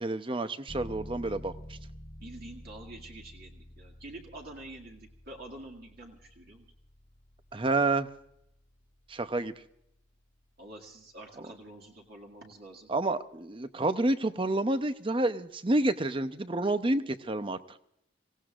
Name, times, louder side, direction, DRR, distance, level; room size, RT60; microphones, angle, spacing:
voice 1, 0.0-1.8 7.5-8.1 9.1-9.5 12.9-17.6, right 2 dB, 25° right, 11 dB, 0.7 m, -29 dB
sound 1, 0.7-11.2, equal, 40° left, 1.5 m, -50 dB
voice 2, 2.2-6.7 10.6-12.9, right 1 dB, 50° right, 0 dB, 2.1 m, -47 dB
26.5 x 17.0 x 2.5 m, 0.77 s
head